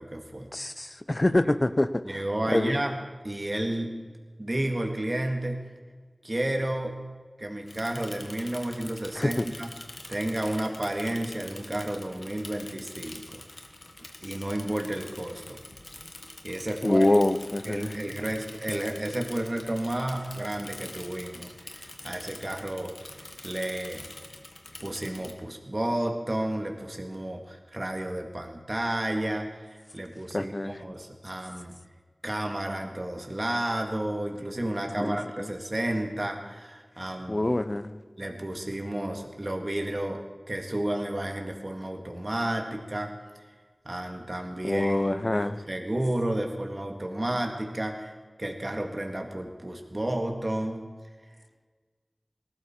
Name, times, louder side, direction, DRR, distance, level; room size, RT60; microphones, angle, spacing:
voice 1, 0.0-0.5 2.0-3.0 3.2-4.0 4.4-5.6 6.2-7.0 7.4-9.7 10.1-13.4 14.2-15.6 16.4-17.2 17.7-24.0 24.8-31.8 32.2-37.5 38.2-40.2 40.5-43.1 43.9-50.8, right 1 dB, 40° right, 2 dB, 1.9 m, -32 dB
voice 2, 0.5-2.2 2.5-2.8 9.1-9.5 16.8-18.0 30.3-30.8 35.0-35.5 37.3-38.0 44.6-45.6, left 1 dB, 40° left, 13 dB, 0.7 m, -25 dB
Bicycle / Mechanisms, 7.7-25.3, left 2 dB, 70° left, 1.5 m, -45 dB
19.0 x 13.0 x 4.4 m, 1.5 s
wide cardioid pair, 50°, 0 cm